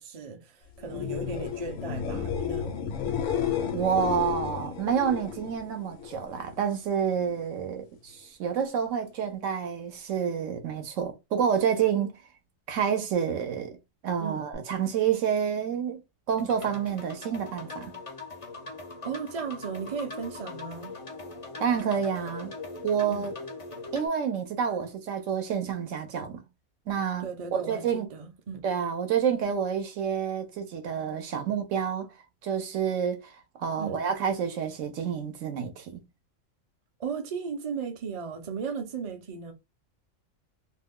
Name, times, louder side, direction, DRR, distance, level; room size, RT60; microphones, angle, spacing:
voice 1, 0.0-2.8 14.2-14.4 19.0-21.0 23.1-23.3 27.2-28.6 33.7-34.0 37.0-39.5, right 6 dB, 40° right, 0.5 m, -36 dB
sound 1, 0.8-6.6 6.9-7.5 14.5-14.6, left 8 dB, 70° left, 0.9 m, -32 dB
voice 2, 3.7-12.1 12.7-13.7 14.0-16.0 16.3-17.9 21.6-22.5 22.8-23.3 23.9-26.4 26.9-27.3 27.5-28.1 28.6-32.1 32.4-33.3 33.6-36.0, right 7 dB, 70° right, 1.0 m, -28 dB
sound 2, 16.4-24.1, left 3 dB, 40° left, 0.5 m, -41 dB
2.6 x 2.3 x 3.5 m
omnidirectional pair, 1.4 m